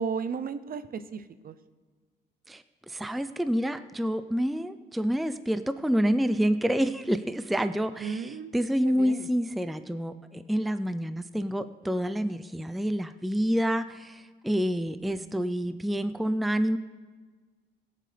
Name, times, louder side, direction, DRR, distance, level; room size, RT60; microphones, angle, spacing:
voice 1, 0.0-1.5 8.0-8.5 8.8-9.3, right 6 dB, 45° right, 13 dB, 0.7 m, -34 dB
voice 2, 2.5-16.8, equal, ahead, 11 dB, 0.5 m, -28 dB
22.0 x 7.5 x 3.4 m, 1.5 s
cardioid pair, 90°, 20 cm